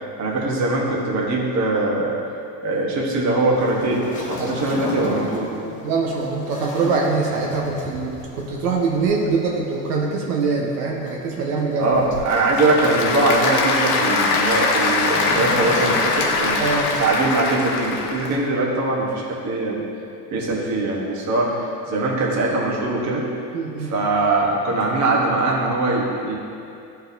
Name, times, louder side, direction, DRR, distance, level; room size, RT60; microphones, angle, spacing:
voice 1, 0.2-2.2 2.6-5.5 11.8-16.7 17.0-19.8 20.3-23.3 23.8-26.3, right 2 dB, 35° right, -3 dB, 1.3 m, -21 dB
Waves surf, 3.5-17.2, left 1 dB, 15° left, 1.0 m, -35 dB
voice 2, 5.8-11.9 16.6-16.9 23.5-23.9, right 4 dB, 80° right, -1 dB, 1.1 m, -23 dB
Applause / Crowd, 11.9-18.4, left 3 dB, 75° left, 1.0 m, -22 dB
11.5 x 4.2 x 2.7 m, 2.5 s
supercardioid pair, 130°, 47 cm